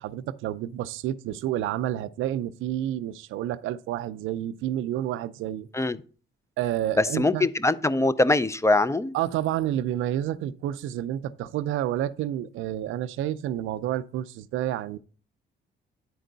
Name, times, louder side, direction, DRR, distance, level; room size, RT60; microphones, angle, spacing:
voice 1, 0.0-5.7 6.6-7.5 9.1-15.0, right 12 dB, 85° right, 0.5 m, -29 dB
voice 2, 7.0-9.2, left 2 dB, 15° left, 0.5 m, -22 dB
10.0 x 4.5 x 3.9 m
cardioid pair, 90°, 20 cm